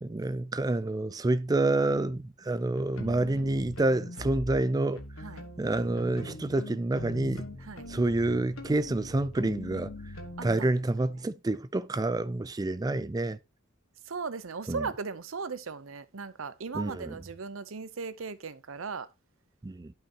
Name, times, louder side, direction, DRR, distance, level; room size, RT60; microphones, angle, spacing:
voice 1, 0.0-5.0 5.6-7.5 7.9-9.9 10.4-13.4 14.7-14.9 16.7-17.2 19.6-19.9, right 2 dB, 20° right, 0.4 m, -28 dB
sound 1, 1.9-2.2 2.7-4.6 4.9-10.6, left 1 dB, 80° left, 1.4 m, -42 dB
voice 2, 10.4-10.7 14.1-19.1, right 5 dB, 75° right, 0.7 m, -37 dB
11.5 x 5.8 x 2.9 m
head